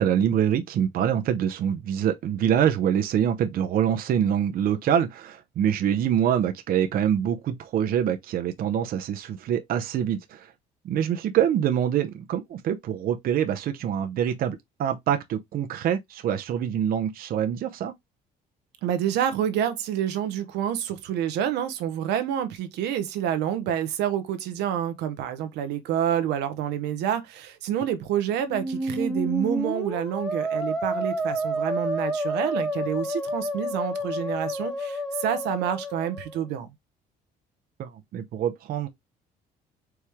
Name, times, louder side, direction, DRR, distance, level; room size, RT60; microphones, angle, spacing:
voice 1, 0.0-10.5 10.8-17.9 37.8-38.9, right 9 dB, 60° right, 0.7 m, -25 dB
voice 2, 18.8-36.7, right 10 dB, 85° right, 0.9 m, -28 dB
Musical instrument, 28.4-36.4, equal, ahead, 1.3 m, -29 dB
4.7 x 3.3 x 3.5 m
cardioid pair, 110°, 17 cm